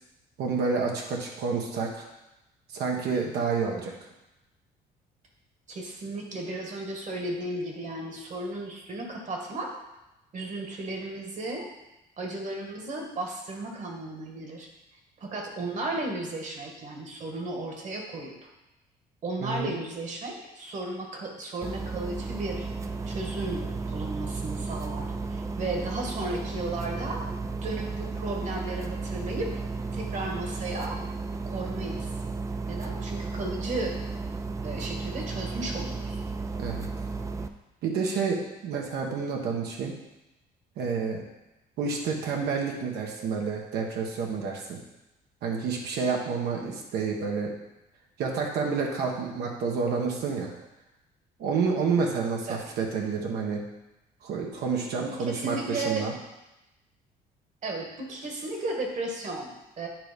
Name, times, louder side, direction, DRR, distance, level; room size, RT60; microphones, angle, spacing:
voice 1, 0.4-2.0 2.7-3.9 19.4-19.7 36.6-36.9 37.8-39.9 40.8-41.2 41.8-44.8 45.4-47.5 48.2-50.5 51.4-53.6 54.2-56.1, right 5 dB, 75° right, 0 dB, 1.3 m, -29 dB
voice 2, 5.7-9.7 10.3-11.7 12.2-14.7 15.2-18.5 19.2-22.7 23.0-27.3 27.6-29.5 29.9-31.0 31.4-32.1 32.7-34.0 34.6-36.2 52.5-52.7 55.2-56.1 57.6-59.9, right 2 dB, 45° right, 1 dB, 1.6 m, -34 dB
sound 1, 21.6-37.5, right 3 dB, 20° right, 0.4 m, -34 dB
9.0 x 3.4 x 5.2 m, 0.95 s
cardioid pair, 110°, 17 cm